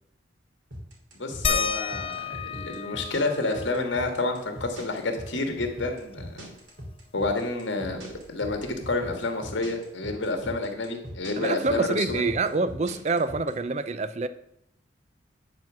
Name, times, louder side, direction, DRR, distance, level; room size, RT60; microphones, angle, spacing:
sound 1, 0.7-13.5, equal, 85° right, 2.7 m, -40 dB
voice 1, 1.1-6.5 7.1-8.0 8.3-12.3, left 2 dB, 75° left, 1.6 m, -29 dB
sound 2, 1.4-6.6 6.9-7.0 7.4-9.1 10.4-10.5 11.2-11.3, left 6 dB, 30° left, 0.4 m, -34 dB
voice 2, 11.4-14.3, right 3 dB, 35° right, 0.4 m, -26 dB
9.5 x 4.5 x 6.0 m
head